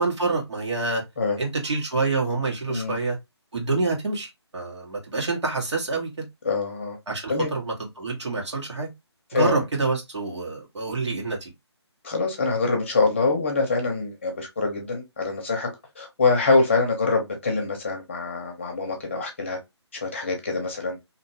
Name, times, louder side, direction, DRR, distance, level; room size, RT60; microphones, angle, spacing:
voice 1, 0.0-1.0 1.4-3.2 3.5-6.1 7.1-8.9 9.3-11.5, right 3 dB, 75° right, 1.6 m, -27 dB
voice 2, 6.4-7.0 7.3-7.5 9.3-9.5 12.0-15.7 16.0-19.6 20.0-21.0, left 3 dB, 25° left, 0.7 m, -24 dB
2.8 x 2.5 x 2.7 m
hypercardioid pair, 170°, 15 cm